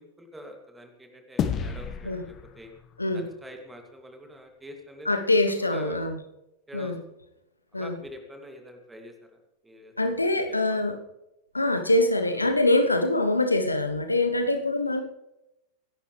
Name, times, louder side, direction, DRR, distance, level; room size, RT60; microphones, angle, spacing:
voice 1, 0.0-2.7 3.1-5.2 5.6-6.0 6.7-7.0 7.7-9.1 9.6-10.8, equal, 10° right, 3 dB, 2.5 m, -45 dB
sound 1, 1.4-4.0, left 7 dB, 30° left, 1.3 m, -33 dB
voice 2, 5.0-6.1 6.7-7.0 7.7-8.0 10.0-11.0 11.5-15.0, left 2 dB, 80° left, 8 dB, 1.1 m, -24 dB
24.5 x 11.0 x 3.3 m, 0.90 s
figure-of-eight pair, 90°, 0 cm